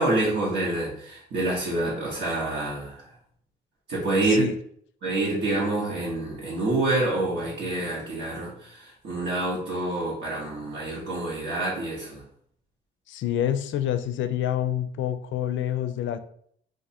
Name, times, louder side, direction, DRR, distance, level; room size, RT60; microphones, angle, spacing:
voice 1, 0.0-3.0 3.9-4.5 5.0-12.2, right 2 dB, 65° right, -7 dB, 1.2 m, -27 dB
voice 2, 13.1-16.2, left 11 dB, 70° left, 10 dB, 0.4 m, -27 dB
2.6 x 2.6 x 4.2 m, 0.65 s
cardioid pair, 90°, 20 cm